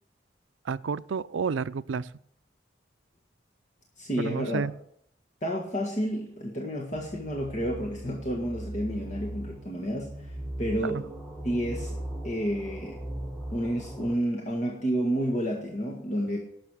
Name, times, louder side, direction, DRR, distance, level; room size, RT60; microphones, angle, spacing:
voice 1, 0.7-2.1 4.2-4.7 10.8-11.0, right 5 dB, 85° right, 15 dB, 0.4 m, -30 dB
voice 2, 4.0-4.6 5.4-11.0 11.4-12.0 12.2-13.0 13.5-16.4, equal, 40° left, -1 dB, 1.7 m, -30 dB
sound 1, 6.9-14.1, right 1 dB, 5° left, 1.3 m, -39 dB
12.0 x 6.6 x 7.7 m, 0.70 s
head